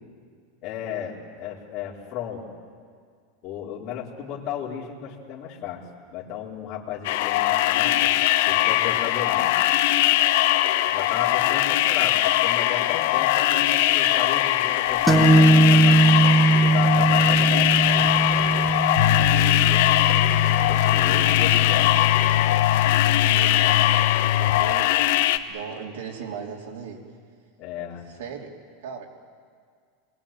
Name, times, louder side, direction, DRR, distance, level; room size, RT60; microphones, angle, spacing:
voice 1, 0.6-2.5 3.4-5.8 6.1-8.2 8.4-9.6 10.9-16.0 16.6-18.8 19.2-20.3 20.7-21.9 27.6-28.0, left 9 dB, 30° left, -5 dB, 3.8 m, -34 dB
sound 1, 7.0-25.4, left 14 dB, 55° left, 1.1 m, -21 dB
sound 2, 15.1-22.6, right 2 dB, 5° right, 1.5 m, -20 dB
sound 3, 19.0-25.1, left 11 dB, 85° left, 0.8 m, -24 dB
voice 2, 19.0-19.3 23.0-24.9 25.5-27.0 28.2-28.5 28.8-29.1, right 6 dB, 90° right, 0 dB, 3.3 m, -38 dB
27.5 x 22.0 x 8.9 m, 2.1 s
supercardioid pair, 175°, 0 cm